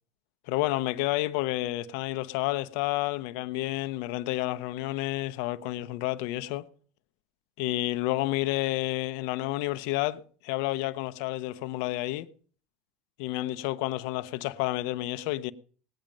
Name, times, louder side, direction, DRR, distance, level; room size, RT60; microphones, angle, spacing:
voice 1, 0.5-6.7 7.6-12.3 13.2-15.5, left 17 dB, 65° left, 0.8 m, -30 dB
18.5 x 9.1 x 5.3 m
supercardioid pair, 120°, 0 cm